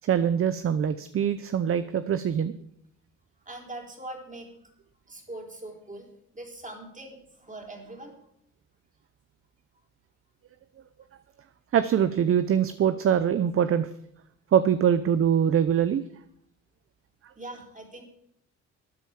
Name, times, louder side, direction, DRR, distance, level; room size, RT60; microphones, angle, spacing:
voice 1, 0.0-2.5 11.7-13.9 14.5-16.0, right 8 dB, 45° right, 13 dB, 0.7 m, -23 dB
voice 2, 3.5-4.5 5.1-8.2 17.4-18.0, right 1 dB, 25° right, 2 dB, 3.9 m, -42 dB
12.5 x 9.3 x 7.3 m, 0.73 s
cardioid pair, 90°, 30 cm